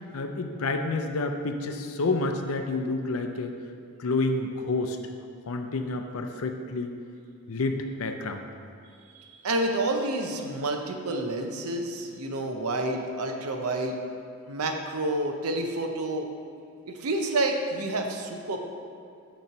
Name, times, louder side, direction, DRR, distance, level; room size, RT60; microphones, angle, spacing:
voice 1, 0.1-3.5 4.0-5.0 5.5-6.9 7.5-8.5, left 3 dB, 75° left, 5 dB, 0.5 m, -29 dB
voice 2, 9.1-14.0 14.5-16.3 16.9-18.7, right 2 dB, 85° right, 3 dB, 0.6 m, -29 dB
6.6 x 3.1 x 5.6 m, 2.4 s
head